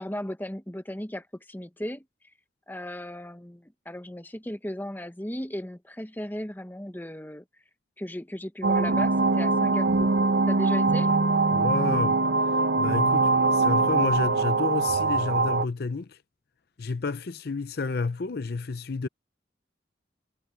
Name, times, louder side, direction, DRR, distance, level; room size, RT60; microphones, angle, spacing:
voice 1, 0.0-2.0 2.7-7.4 8.0-10.1 10.5-11.1, left 1 dB, 10° left, 1.0 m, -36 dB
sound 1, 8.6-15.7, right 3 dB, 75° right, 0.7 m, -23 dB
voice 2, 11.5-12.2 12.8-16.2 16.8-19.1, left 4 dB, 60° left, 0.6 m, -30 dB
head